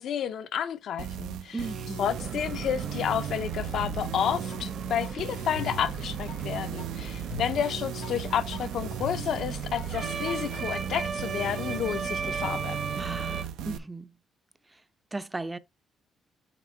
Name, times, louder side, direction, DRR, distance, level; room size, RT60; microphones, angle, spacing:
voice 1, 0.0-1.6 2.0-12.8, left 9 dB, 70° left, 0.6 m, -31 dB
sound 1, 1.0-13.8, right 8 dB, 90° right, 0.6 m, -36 dB
voice 2, 1.5-2.1 13.0-14.1 14.7-14.8 15.1-15.6, right 3 dB, 15° right, 0.5 m, -36 dB
sound 2, 2.0-13.4, right 5 dB, 50° right, 1.1 m, -37 dB
sound 3, 3.8-4.6 5.0-10.6, left 8 dB, 85° left, 1.6 m, -43 dB
6.0 x 4.0 x 4.3 m
cardioid pair, 90°, 0 cm